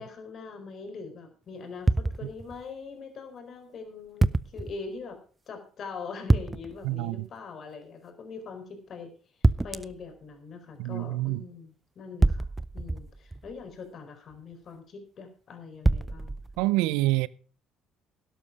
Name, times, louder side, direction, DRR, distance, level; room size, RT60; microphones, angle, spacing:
voice 1, 0.0-5.2 5.5-9.1 9.6-12.4 12.7-16.4, left 5 dB, 50° left, 4.2 m, -42 dB
sound 1, 1.9-2.6 4.2-4.8 6.3-6.9 9.4-10.0 12.2-13.6 15.8-16.7, right 2 dB, 15° right, 0.6 m, -26 dB
voice 2, 6.8-7.3 10.8-11.4 16.6-17.3, right 18 dB, 75° right, 0.5 m, -26 dB
12.5 x 11.5 x 4.8 m
hypercardioid pair, 60°, 0 cm